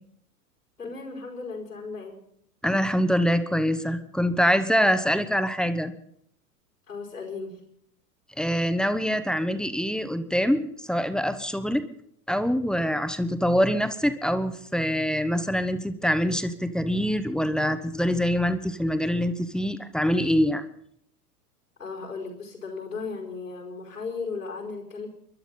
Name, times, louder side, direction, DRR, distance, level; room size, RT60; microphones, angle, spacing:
voice 1, 0.8-2.2 6.9-7.6 21.8-25.1, left 4 dB, 85° left, 0 dB, 5.3 m, -36 dB
voice 2, 2.6-5.9 8.4-11.8 12.3-20.6, equal, ahead, 10 dB, 0.8 m, -24 dB
28.5 x 11.5 x 4.3 m, 0.68 s
figure-of-eight pair, 90°, 46 cm